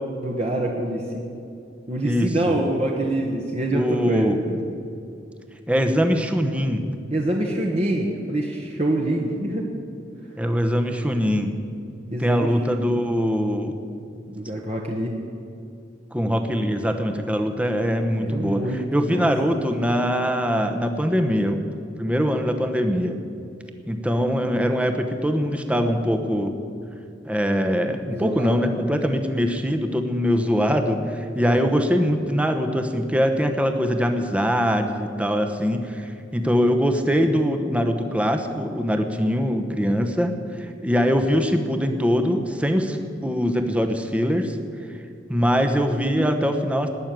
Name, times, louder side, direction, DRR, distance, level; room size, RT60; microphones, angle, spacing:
voice 1, 0.2-1.3 1.9-4.6 7.1-9.7 12.1-13.1 14.2-15.2 18.1-19.3 28.1-28.6 31.4-31.7, right 1 dB, 35° right, -1 dB, 1.2 m, -26 dB
voice 2, 2.0-2.6 3.7-4.4 5.7-6.8 10.4-11.5 12.2-13.8 16.1-18.6 18.9-21.6 22.0-23.2 23.9-26.5 27.2-40.3 40.6-43.0 43.2-44.6 45.3-46.9, equal, 5° right, 5 dB, 0.9 m, -22 dB
19.0 x 6.4 x 9.1 m, 2.5 s
head